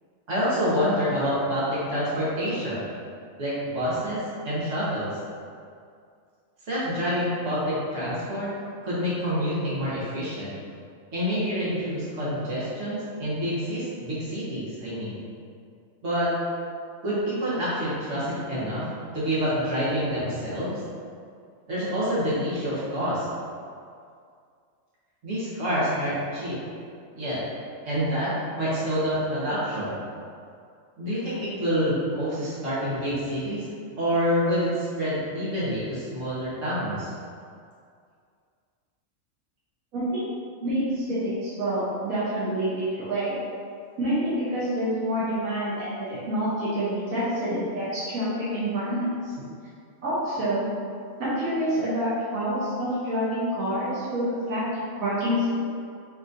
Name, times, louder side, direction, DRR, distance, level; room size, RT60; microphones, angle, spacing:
voice 1, 0.3-2.9 3.4-5.1 6.7-8.5 8.8-10.5 11.1-15.2 16.0-16.3 17.0-18.9 19.1-20.8 21.7-23.3 25.2-26.6 27.1-27.4 27.8-30.0 31.0-33.7 34.0-37.1, equal, 60° right, -10 dB, 1.6 m, -27 dB
voice 2, 39.9-40.2 40.6-43.4 44.0-49.3 50.0-50.7 51.2-55.6, equal, 80° right, -11 dB, 1.4 m, -27 dB
4.9 x 3.1 x 2.6 m, 2.3 s
omnidirectional pair, 1.4 m